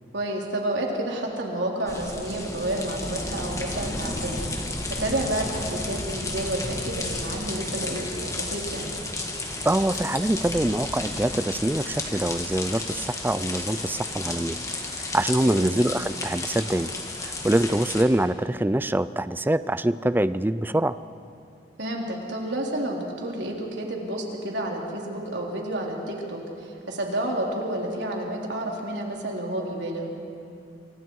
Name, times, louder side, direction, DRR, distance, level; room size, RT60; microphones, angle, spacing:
voice 1, 0.1-8.9 15.4-15.8 21.8-30.1, right 1 dB, 80° right, -1 dB, 3.5 m, -30 dB
sound 1, 1.9-18.0, left 2 dB, 20° left, 1.9 m, -32 dB
voice 2, 9.7-14.6 15.1-16.9 17.2-21.0, right 1 dB, 10° right, 15 dB, 0.4 m, -24 dB
27.5 x 24.5 x 4.7 m, 2.5 s
head